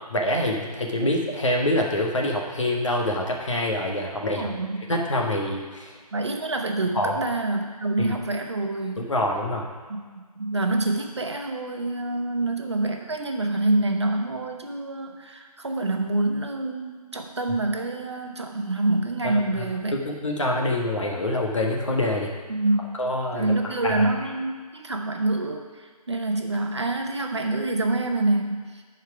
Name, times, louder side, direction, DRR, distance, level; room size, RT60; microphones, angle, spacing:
voice 1, 0.1-4.5 4.9-5.9 6.9-7.1 8.0-8.1 9.0-9.7 19.2-19.6 19.9-22.3 23.0-23.5 23.8-24.1, left 1 dB, 50° left, 0 dB, 1.4 m, -25 dB
voice 2, 4.3-4.9 6.1-9.1 9.9-10.0 10.4-19.9 22.5-22.8 23.3-28.8, right 2 dB, 45° right, 3 dB, 0.9 m, -26 dB
10.5 x 4.7 x 4.9 m, 1.5 s
figure-of-eight pair, 175°, 20 cm